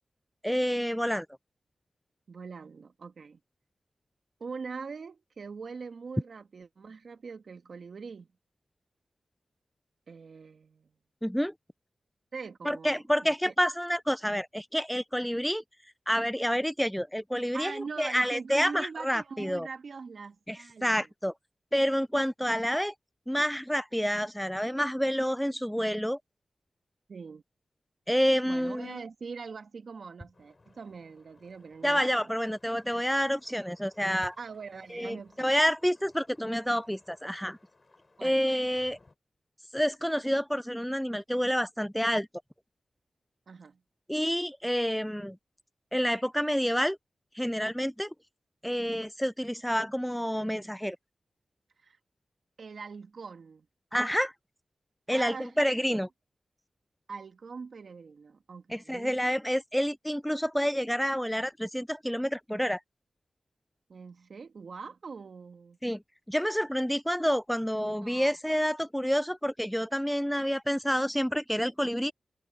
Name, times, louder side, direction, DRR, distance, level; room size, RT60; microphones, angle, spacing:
voice 1, 0.4-1.3 11.2-11.5 12.6-15.6 16.1-19.7 20.5-21.3 21.7-22.9 23.3-26.2 28.1-29.0 31.8-34.4 34.9-37.6 38.2-39.0 39.7-42.3 44.1-45.4 45.9-47.0 47.3-48.1 48.6-51.0 53.9-54.3 55.1-56.1 58.7-62.8 65.8-66.0 66.3-72.1, equal, ahead, 0.4 m, -28 dB
voice 2, 2.3-3.4 4.4-8.3 10.1-10.9 12.3-13.5 17.5-21.1 27.1-27.4 28.4-32.4 34.4-35.5 38.2-38.4 43.5-43.8 51.8-52.0 52.6-53.7 55.1-55.5 57.1-59.1 63.9-65.8 67.9-68.3, right 5 dB, 70° right, 1.9 m, -42 dB
sound 1, 30.3-39.1, left 3 dB, 40° left, 7.7 m, -60 dB
cardioid pair, 45°, 0 cm